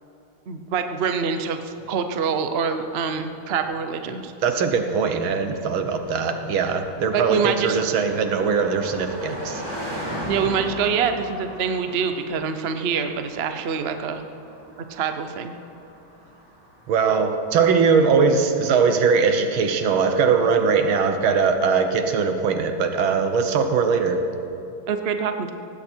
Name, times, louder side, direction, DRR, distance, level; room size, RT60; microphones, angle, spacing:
voice 1, 0.5-1.6 1.9-4.3 7.1-7.8 10.2-14.2 14.9-15.5 24.9-25.5, right 6 dB, 50° right, 7 dB, 0.7 m, -25 dB
Car passing by, 1.7-18.2, equal, 10° right, 3.6 m, -39 dB
voice 2, 4.4-9.6 16.9-24.2, right 5 dB, 80° right, 7 dB, 1.9 m, -21 dB
18.0 x 16.0 x 4.5 m, 2.9 s
omnidirectional pair, 2.2 m